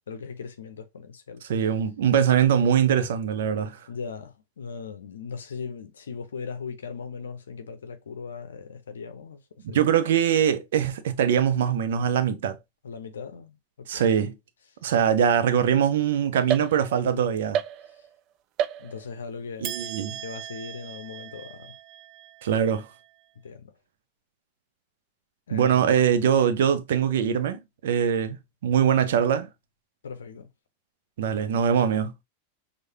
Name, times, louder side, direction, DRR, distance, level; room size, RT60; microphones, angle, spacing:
voice 1, 0.1-1.4 3.9-9.4 9.7-9.8 12.8-14.1 18.8-19.8 20.2-21.8 23.4-23.7 25.5-25.9 30.0-30.5, left 5 dB, 65° left, 0.6 m, -38 dB
voice 2, 1.5-3.8 9.6-12.6 13.9-14.3 14.8-17.6 19.6-20.2 22.4-22.9 25.5-29.5 31.2-32.1, right 8 dB, 55° right, 0.8 m, -22 dB
sound 1, 16.5-17.1 17.5-18.2 18.6-19.2 19.6-23.1, right 10 dB, 40° right, 0.3 m, -34 dB
6.3 x 2.5 x 2.8 m
figure-of-eight pair, 90°, 0 cm